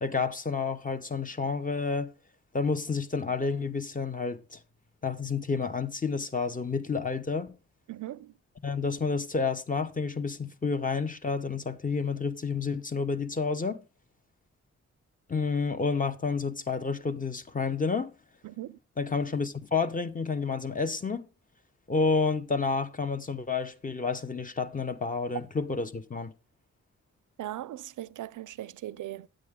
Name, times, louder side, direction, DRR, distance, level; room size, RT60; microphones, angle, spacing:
voice 1, 0.0-2.1 2.5-4.6 5.0-7.5 8.6-13.8 15.3-18.1 19.0-21.3 21.9-26.3, left 4 dB, 25° left, 0.8 m, -30 dB
voice 2, 7.9-8.3 18.4-18.8 27.4-29.3, right 13 dB, 85° right, 0.5 m, -39 dB
9.3 x 8.8 x 3.5 m
wide cardioid pair, 115°, 30 cm